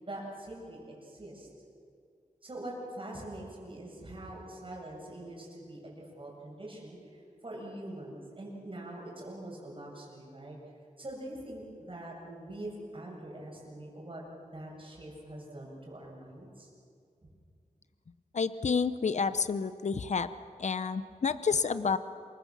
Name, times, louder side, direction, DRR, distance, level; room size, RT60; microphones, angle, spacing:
voice 1, 0.0-1.5 2.4-10.6 11.0-14.2 14.5-16.7 17.2-17.3, right 1 dB, 40° right, -2 dB, 7.6 m, -44 dB
voice 2, 18.3-20.3 20.6-22.0, left 5 dB, 60° left, 13 dB, 0.8 m, -29 dB
28.0 x 23.0 x 7.3 m, 2.4 s
wide cardioid pair, 100°, 14 cm